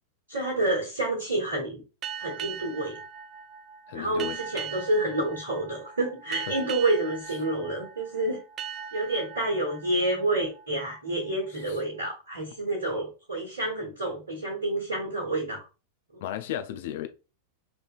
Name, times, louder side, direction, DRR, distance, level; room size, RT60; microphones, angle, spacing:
voice 1, 0.3-1.8 2.2-3.0 3.9-8.4 8.9-15.6 16.1-16.2, right 2 dB, 70° right, 1.1 m, -29 dB
sound 1, 2.0-11.3, right 8 dB, 30° right, 0.4 m, -40 dB
voice 2, 3.9-4.4 6.5-6.6 11.7-11.8 16.2-17.1, left 11 dB, 55° left, 0.3 m, -34 dB
3.3 x 2.8 x 2.3 m
figure-of-eight pair, 90°, 0 cm